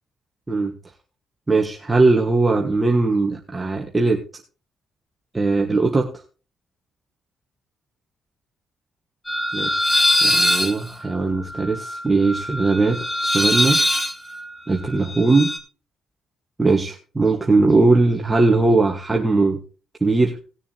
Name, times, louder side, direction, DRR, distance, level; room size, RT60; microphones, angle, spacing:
voice 1, 1.5-4.2 5.3-6.1 9.5-9.9 10.2-13.8 14.7-15.5 16.6-19.6 20.0-20.4, right 3 dB, 20° right, 1 dB, 1.4 m, -19 dB
sound 1, 9.3-15.6, left 1 dB, 15° left, 2.3 m, -22 dB
19.0 x 6.8 x 2.8 m, 0.36 s
cardioid pair, 90°, 0 cm